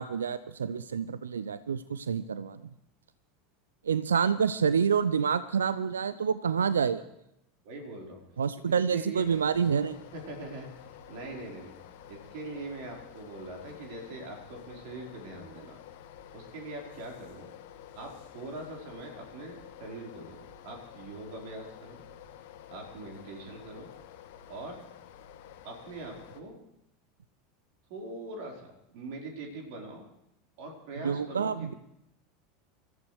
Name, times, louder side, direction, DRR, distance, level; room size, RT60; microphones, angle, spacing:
voice 1, 0.0-2.6 3.8-7.0 8.4-10.0 31.0-31.7, right 6 dB, 75° right, 15 dB, 0.5 m, -28 dB
voice 2, 7.6-8.2 8.6-9.2 10.1-10.7 11.1-11.7 12.1-15.8 16.3-17.5 17.9-22.0 22.7-23.9 24.5-24.8 25.6-26.6 27.9-30.1 30.6-31.8, right 2 dB, 55° right, 0 dB, 4.3 m, -42 dB
sound 1, 9.2-26.4, left 10 dB, 60° left, 1.3 m, -50 dB
27.0 x 14.5 x 3.3 m, 0.82 s
figure-of-eight pair, 80°, 0 cm